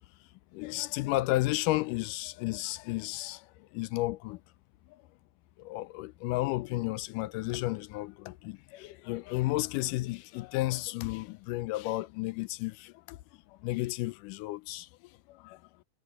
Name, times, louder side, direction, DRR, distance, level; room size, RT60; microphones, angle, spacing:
voice 1, 0.5-4.4 4.9-5.0 5.7-15.6, left 18 dB, 80° left, 2.1 m, -33 dB
omnidirectional pair, 4.0 m